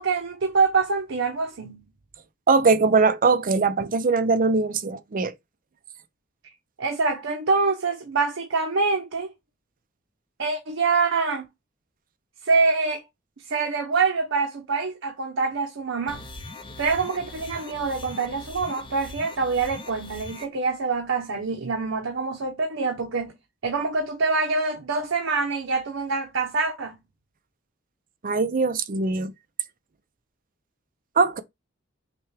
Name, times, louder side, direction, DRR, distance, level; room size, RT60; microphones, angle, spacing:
voice 1, 0.0-1.9 6.8-9.3 10.4-11.4 12.4-13.0 13.4-16.2 16.8-23.3 23.6-27.0, right 4 dB, 80° right, 0.8 m, -25 dB
voice 2, 2.5-5.3 28.2-29.3 31.2-31.4, right 4 dB, 45° right, 0.6 m, -21 dB
sound 1, 16.1-20.5, left 2 dB, 25° left, 0.6 m, -41 dB
5.9 x 2.3 x 3.2 m
head